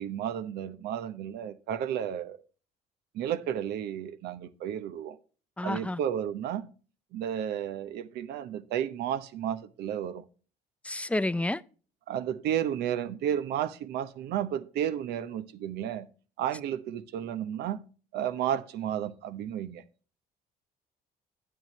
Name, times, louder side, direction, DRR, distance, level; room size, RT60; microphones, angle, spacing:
voice 1, 0.0-2.4 3.1-5.2 5.6-6.7 7.1-10.2 12.1-16.1 16.4-17.8 18.1-19.8, right 10 dB, 75° right, 0.8 m, -32 dB
voice 2, 5.6-6.0 10.8-11.6, left 1 dB, 5° left, 0.4 m, -29 dB
9.3 x 9.0 x 3.1 m
supercardioid pair, 75°, 17 cm